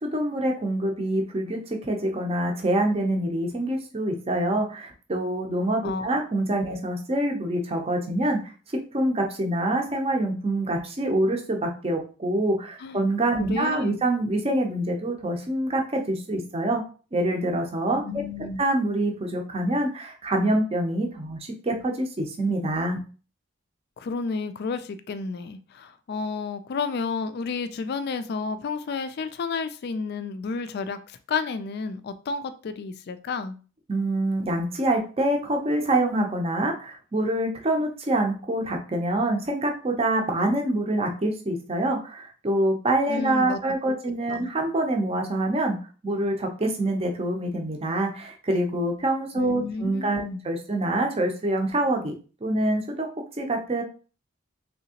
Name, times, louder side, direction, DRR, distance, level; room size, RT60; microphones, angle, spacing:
voice 1, 0.0-8.4 8.9-16.8 17.1-18.0 18.6-23.0 33.9-45.8 46.0-52.1 52.4-53.1 53.4-53.8, right 1 dB, 30° right, 3 dB, 0.6 m, -25 dB
voice 2, 5.8-6.2 12.8-13.0 13.4-14.0 18.0-18.6 24.0-33.6 43.1-43.6 43.9-44.0 44.3-44.5 49.4-50.4, left 4 dB, 55° left, 11 dB, 0.3 m, -31 dB
3.4 x 2.8 x 2.8 m, 0.36 s
head